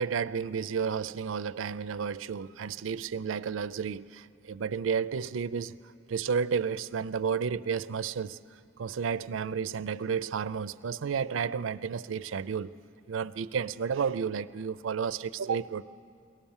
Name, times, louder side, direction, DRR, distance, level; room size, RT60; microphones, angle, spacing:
voice 1, 0.0-5.8 6.1-8.4 8.8-12.7 13.1-15.8, right 6 dB, 85° right, 0.4 m, -32 dB
22.5 x 18.0 x 7.2 m
head